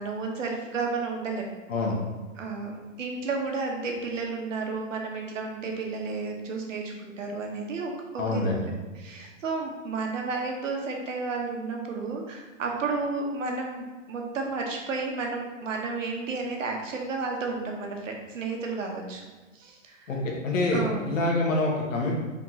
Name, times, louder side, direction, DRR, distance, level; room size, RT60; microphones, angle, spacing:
voice 1, 0.0-1.5 2.4-8.5 8.9-19.2 19.5-20.2 20.7-21.1, right 4 dB, 75° right, 1 dB, 1.0 m, -32 dB
voice 2, 8.2-8.7 20.1-22.1, left 2 dB, 80° left, -2 dB, 1.3 m, -26 dB
3.7 x 2.9 x 3.8 m, 1.3 s
hypercardioid pair, 175°, 39 cm